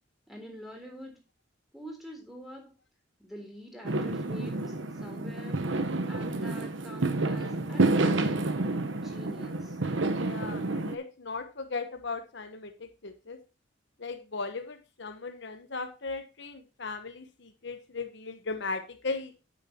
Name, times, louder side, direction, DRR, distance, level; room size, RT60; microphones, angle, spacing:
voice 1, 0.3-1.2 1.7-2.7 3.2-4.8 5.0-5.6 6.0-8.5 9.0-9.8, equal, ahead, 1 dB, 3.6 m, -46 dB
Fireworks, 3.8-10.9, right 2 dB, 70° right, 1.1 m, -29 dB
voice 2, 10.1-13.4 14.0-19.3, left 4 dB, 65° left, 7 dB, 1.1 m, -37 dB
9.1 x 9.0 x 2.9 m, 0.30 s
head